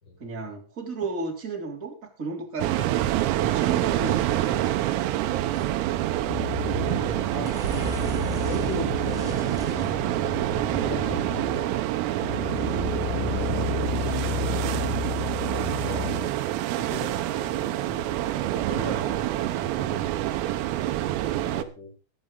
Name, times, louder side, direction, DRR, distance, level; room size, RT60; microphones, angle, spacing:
voice 1, 0.2-5.1, right 3 dB, 20° right, 1 dB, 2.8 m, -34 dB
sound 1, 2.6-21.6, right 13 dB, 80° right, 3.6 m, -27 dB
voice 2, 5.5-6.2 6.8-8.1 8.5-9.9 10.5-11.8 13.0-14.7 15.4-16.4 16.7-19.3 19.6-20.3 21.4-21.9, left 2 dB, 20° left, -1 dB, 5.8 m, -39 dB
sound 2, 5.5-6.5 6.8-6.9 7.2-10.0 10.6-11.1 11.5-11.8 12.1-12.2, right 1 dB, ahead, 2.6 m, -42 dB
sound 3, 6.3-7.2 7.6-11.7 12.2-16.4, left 8 dB, 70° left, 5.2 m, -33 dB
21.0 x 8.9 x 3.9 m, 0.35 s
omnidirectional pair, 6.0 m